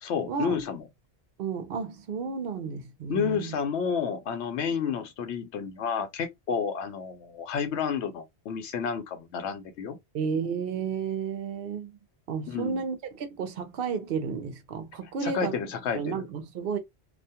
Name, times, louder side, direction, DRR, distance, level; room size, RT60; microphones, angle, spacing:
voice 1, 0.0-0.8 3.1-10.0 12.5-12.8 15.2-16.3, left 6 dB, 90° left, 0.9 m, -30 dB
voice 2, 1.4-3.5 10.1-11.9 12.3-15.6 16.0-16.8, right 6 dB, 65° right, 0.7 m, -32 dB
2.4 x 2.2 x 2.7 m
omnidirectional pair, 1.1 m